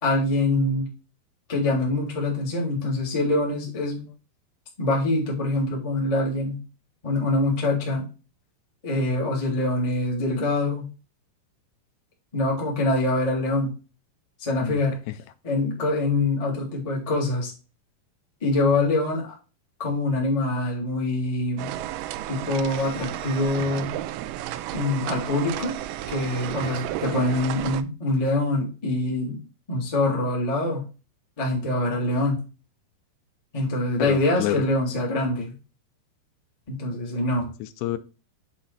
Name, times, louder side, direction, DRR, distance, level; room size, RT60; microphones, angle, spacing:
voice 1, 0.0-0.9 1.5-4.1 4.8-6.6 7.0-8.1 8.8-10.9 12.3-13.7 14.4-15.0 15.4-17.5 18.4-19.3 19.8-21.7 22.3-23.9 24.7-25.7 26.1-29.4 29.7-30.9 31.4-32.4 33.5-35.5 36.7-37.5, left 2 dB, 15° left, -3 dB, 1.1 m, -24 dB
sound 1, 21.6-27.8, right 13 dB, 90° right, 2.7 m, -32 dB
voice 2, 34.0-34.7 37.6-38.0, left 13 dB, 85° left, 12 dB, 2.7 m, -28 dB
7.4 x 4.0 x 3.9 m, 0.33 s
omnidirectional pair, 4.7 m